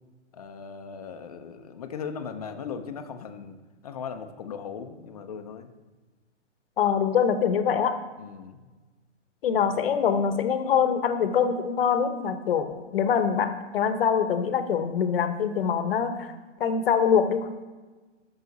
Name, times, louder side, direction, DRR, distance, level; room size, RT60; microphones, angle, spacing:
voice 1, 0.3-3.6 3.8-5.7 8.2-8.7 9.7-9.9, left 6 dB, 30° left, 8 dB, 0.5 m, -38 dB
voice 2, 6.8-8.0 9.4-16.3 16.6-17.7, left 7 dB, 50° left, 9 dB, 0.9 m, -24 dB
13.0 x 5.6 x 4.0 m, 1.3 s
hypercardioid pair, 155°, 37 cm